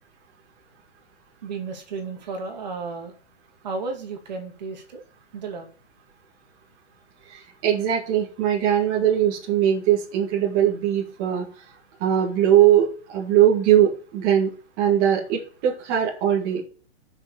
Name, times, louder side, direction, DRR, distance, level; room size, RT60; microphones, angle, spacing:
voice 1, 1.4-3.2 3.6-5.0 5.3-5.7, right 4 dB, 40° right, 4 dB, 2.3 m, -33 dB
voice 2, 7.3-11.5 12.0-16.6, right 10 dB, 20° right, -4 dB, 2.1 m, -20 dB
8.1 x 6.2 x 6.5 m, 0.39 s
hypercardioid pair, 180°, 34 cm